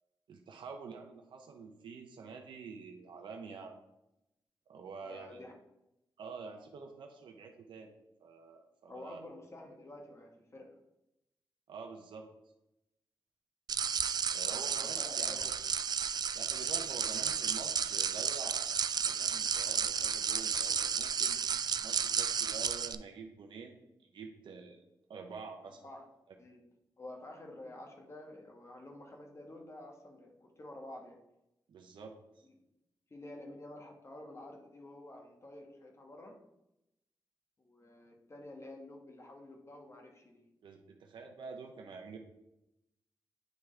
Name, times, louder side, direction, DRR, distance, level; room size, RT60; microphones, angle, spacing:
voice 1, 0.3-3.7 4.7-5.4 6.2-7.9 8.2-9.2 11.7-12.3 14.3-15.5 16.3-18.8 19.0-21.4 21.8-23.8 24.1-24.8 25.1-25.8 31.7-32.5 40.6-42.2, right 5 dB, 85° right, 2 dB, 0.7 m, -47 dB
voice 2, 5.0-5.5 8.9-10.7 14.4-15.5 25.8-26.0 26.4-26.6 27.0-31.2 33.1-36.4 37.6-40.4, left 1 dB, 35° left, 2 dB, 1.4 m, -50 dB
sound 1, 13.7-22.9, right 7 dB, 60° right, 0.3 m, -32 dB
9.1 x 3.5 x 3.3 m, 0.88 s
cardioid pair, 75°, 8 cm